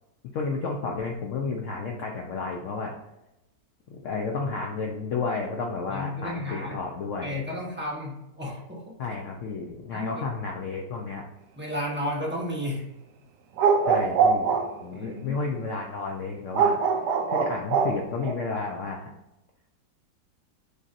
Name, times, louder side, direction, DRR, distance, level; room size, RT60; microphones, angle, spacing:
voice 1, 0.3-2.9 3.9-7.4 9.0-11.2 13.9-14.5 14.8-16.8 17.3-19.1, left 4 dB, 80° left, 1 dB, 0.6 m, -32 dB
voice 2, 5.9-6.8 7.2-9.0 9.9-10.2 11.6-12.8 14.9-15.3, left 1 dB, 10° right, -5 dB, 0.5 m, -33 dB
sound 1, 13.6-14.9 16.5-18.3, right 6 dB, 75° right, 1.2 m, -22 dB
6.7 x 2.7 x 2.5 m, 0.91 s
omnidirectional pair, 1.9 m